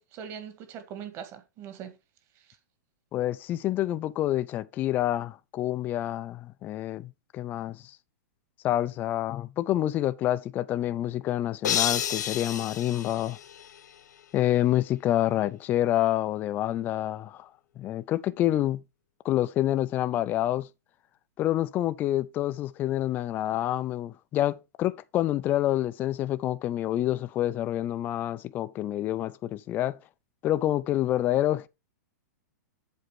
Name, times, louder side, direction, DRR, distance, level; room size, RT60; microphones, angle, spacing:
voice 1, 0.0-2.0 2.4-2.5, right 8 dB, 30° right, 1.8 m, -41 dB
voice 2, 3.1-7.8 8.6-13.4 14.3-17.5 17.8-18.8 19.2-20.7 21.4-30.0 30.4-31.7, left 13 dB, 20° left, 0.4 m, -27 dB
sound 1, 11.6-14.0, left 10 dB, 75° left, 1.1 m, -30 dB
7.9 x 4.3 x 6.3 m
hypercardioid pair, 155°, 10 cm